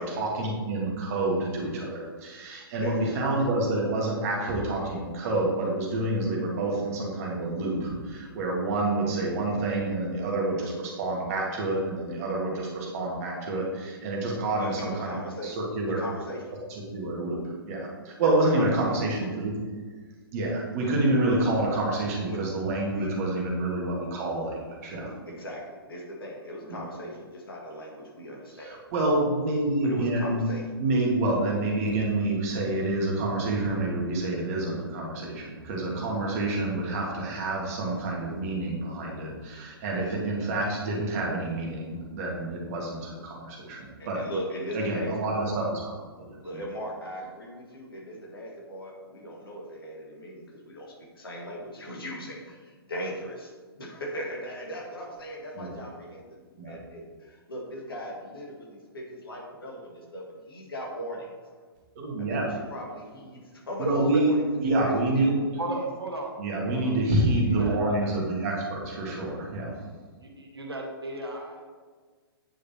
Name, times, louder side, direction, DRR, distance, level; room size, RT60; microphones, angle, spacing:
voice 1, 0.0-15.2 15.4-16.0 16.7-19.5 20.3-25.1 26.7-26.8 28.6-30.4 30.8-44.2 44.7-45.9 46.2-46.6 55.5-55.7 56.6-56.8 61.9-62.5 63.8-64.3 64.6-65.4 66.4-69.7, right 2 dB, 40° right, -2 dB, 1.7 m, -28 dB
voice 2, 14.6-15.5 16.0-16.5 18.2-19.3 21.5-21.6 22.3-22.4 22.9-23.1 24.6-24.7 25.3-28.8 29.8-30.6 44.0-45.6 46.4-53.5 53.8-61.6 62.3-64.4 64.8-65.6, equal, 65° left, -2 dB, 1.7 m, -38 dB
voice 3, 65.6-66.3 66.7-67.0 67.5-68.2 70.2-71.7, right 2 dB, 75° right, 1 dB, 1.1 m, -35 dB
8.9 x 4.9 x 2.9 m, 1.5 s
figure-of-eight pair, 115°, 13 cm